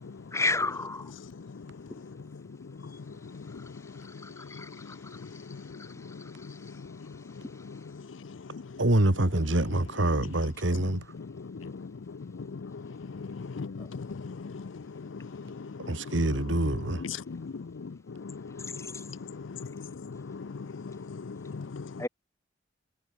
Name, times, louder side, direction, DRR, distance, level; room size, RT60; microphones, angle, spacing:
voice 1, 0.3-1.1 4.2-5.0 22.0-22.1, left 3 dB, 15° left, 4.5 m, -31 dB
voice 2, 8.8-11.0 15.9-17.0, right 1 dB, 75° right, 2.2 m, -26 dB
voice 3, 11.4-12.8 13.5-16.1 17.0-22.0, left 5 dB, 85° left, 0.5 m, -40 dB
head